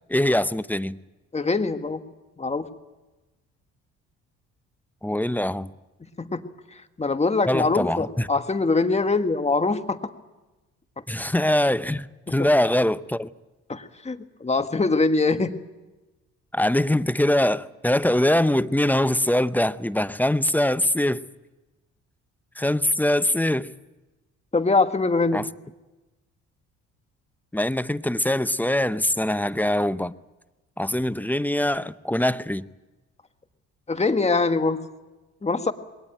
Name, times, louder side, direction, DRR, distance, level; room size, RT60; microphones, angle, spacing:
voice 1, 0.1-1.0 5.0-5.7 7.5-8.3 11.1-13.3 16.5-21.2 22.6-23.7 25.3-25.5 27.5-30.1 30.8-32.6, left 1 dB, 5° left, 0.7 m, -23 dB
voice 2, 1.3-2.0 2.4-2.7 6.2-6.4 6.7-10.1 12.4-12.5 13.7-15.5 24.5-25.4 33.9-34.8 35.4-35.7, left 3 dB, 20° left, 1.6 m, -23 dB
21.5 x 18.0 x 9.1 m
supercardioid pair, 70°, 31 cm